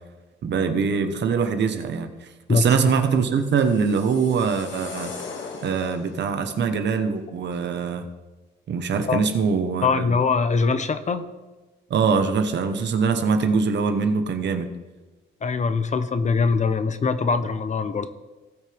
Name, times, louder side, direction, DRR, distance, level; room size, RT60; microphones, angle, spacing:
voice 1, 0.4-5.1 5.6-8.0 8.7-10.1 11.9-14.7, right 5 dB, 65° right, 8 dB, 1.3 m, -23 dB
sound 1, 3.1-6.3, left 4 dB, 75° left, 1.8 m, -39 dB
voice 2, 9.8-11.2 15.4-18.1, left 4 dB, 35° left, 11 dB, 0.9 m, -22 dB
18.5 x 6.5 x 3.6 m, 1.2 s
cardioid pair, 90°, 20 cm